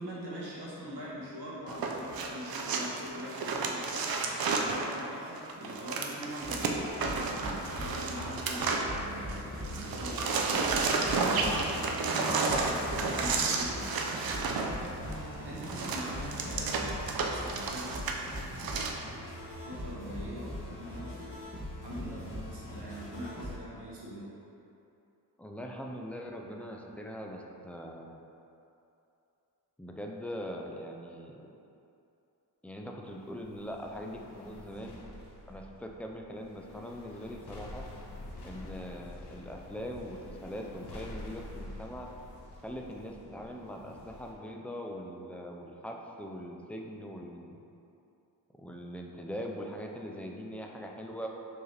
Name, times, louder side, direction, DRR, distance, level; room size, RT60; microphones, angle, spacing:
voice 1, 0.0-4.1 4.5-6.8 7.3-10.7 11.2-13.9 15.4-18.5 19.6-21.4 21.8-24.3, equal, 85° right, -6 dB, 1.1 m, -43 dB
sound 1, 1.7-9.4 9.6-18.9, right 4 dB, 65° right, 0.5 m, -32 dB
sound 2, 6.4-23.6, left 1 dB, 30° left, 1.2 m, -41 dB
voice 2, 16.1-16.9 25.4-28.2 29.8-31.5 32.6-35.0 35.5-37.8 38.4-42.1 42.6-47.6 48.6-51.3, equal, 5° left, 0 dB, 0.3 m, -42 dB
sound 3, 33.1-44.3, left 1 dB, 85° left, 0.7 m, -48 dB
4.5 x 2.9 x 3.2 m, 2.7 s
cardioid pair, 65°, 39 cm